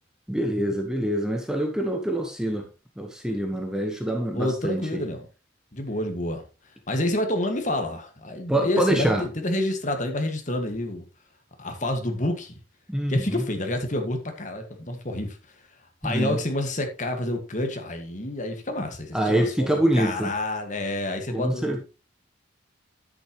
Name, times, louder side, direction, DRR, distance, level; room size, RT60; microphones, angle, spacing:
voice 1, 0.3-2.7 3.0-5.0 8.5-9.2 12.9-13.4 16.0-16.4 19.1-20.3 21.3-21.8, right 1 dB, 5° right, 1.0 m, -25 dB
voice 2, 4.3-5.3 5.7-6.4 6.9-11.1 11.6-12.6 13.1-15.4 16.0-21.8, left 1 dB, 40° left, 2.0 m, -28 dB
10.0 x 9.0 x 3.1 m
head